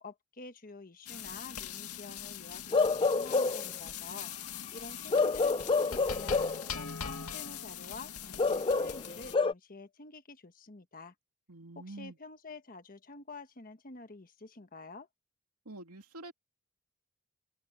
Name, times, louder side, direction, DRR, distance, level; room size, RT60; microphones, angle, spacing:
voice 1, 0.0-6.4 6.7-11.1 11.7-15.1, left 3 dB, 40° left, 1.3 m, -49 dB
sound 1, 1.1-9.4, left 8 dB, 85° left, 2.1 m, -42 dB
Bark / Livestock farm animals working animals, 2.7-3.7 5.1-6.6 8.4-9.5, left 4 dB, 25° left, 0.4 m, -28 dB
voice 2, 11.5-12.2 15.6-16.3, right 2 dB, 85° right, 2.8 m, -46 dB
open air
head